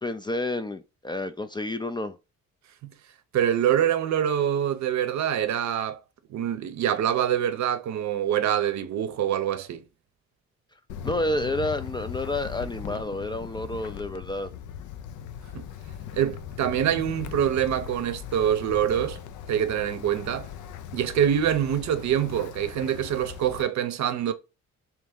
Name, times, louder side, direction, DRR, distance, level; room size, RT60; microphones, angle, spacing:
voice 1, 0.0-2.2 11.0-14.5, left 1 dB, 15° left, 0.3 m, -30 dB
voice 2, 3.3-6.0 6.3-9.8 15.5-15.7 16.1-19.2 19.5-20.5 20.9-24.3, right 10 dB, 65° right, 0.6 m, -25 dB
Wind, 10.9-23.6, left 9 dB, 80° left, 0.5 m, -39 dB
3.4 x 3.0 x 3.6 m
cardioid pair, 90°, 30 cm